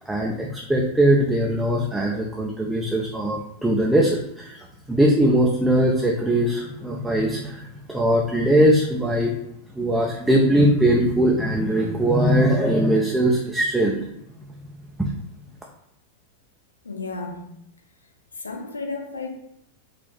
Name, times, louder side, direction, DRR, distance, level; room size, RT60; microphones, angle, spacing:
voice 1, 0.1-4.6 4.9-9.3 9.7-14.0, right 1 dB, 5° right, -1 dB, 0.5 m, -20 dB
voice 2, 16.8-17.5 18.3-19.3, left 3 dB, 75° left, 3 dB, 0.7 m, -32 dB
4.0 x 2.7 x 3.4 m, 0.76 s
figure-of-eight pair, 90°, 0 cm